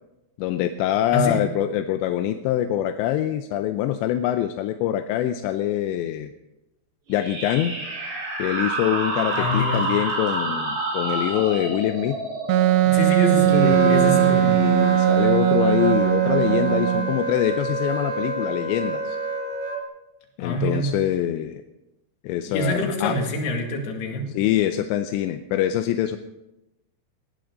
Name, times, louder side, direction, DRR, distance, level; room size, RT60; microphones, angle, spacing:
voice 1, 0.4-6.3 7.1-7.7 8.4-12.2 13.3-19.2 20.4-21.6 22.2-23.2 24.3-26.2, left 11 dB, 85° left, 8 dB, 3.0 m, -24 dB
sound 1, 7.1-14.3, right 2 dB, 60° right, 5.8 m, -29 dB
voice 2, 9.4-9.9 12.9-14.6 20.4-20.9 22.5-24.3, left 1 dB, 70° left, 2 dB, 4.2 m, -25 dB
Wind instrument woodwind instrument, 12.5-17.1, right 15 dB, 85° right, 2.8 m, -19 dB
Wind instrument woodwind instrument 2, 13.6-19.8, right 3 dB, 40° right, 0.4 m, -29 dB
19.0 x 15.0 x 3.9 m, 0.95 s
omnidirectional pair, 5.0 m